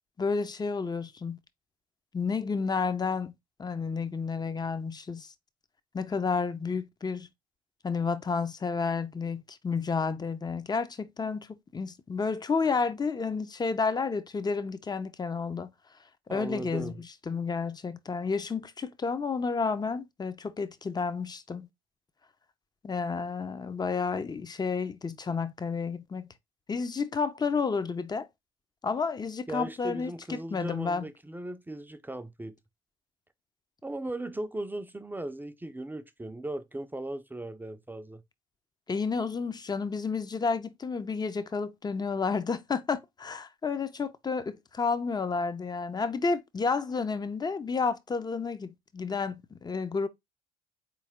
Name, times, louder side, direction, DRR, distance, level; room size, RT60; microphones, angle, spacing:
voice 1, 0.2-1.4 2.1-3.3 3.6-5.3 5.9-7.3 7.8-11.5 11.7-15.7 16.3-21.7 22.8-26.3 26.7-28.3 28.8-31.0 38.9-50.1, left 5 dB, 25° left, 0.7 m, -31 dB
voice 2, 16.3-17.0 29.5-32.6 33.8-38.2, right 1 dB, 10° right, 0.6 m, -37 dB
4.2 x 3.2 x 3.6 m
hypercardioid pair, 60°, 16 cm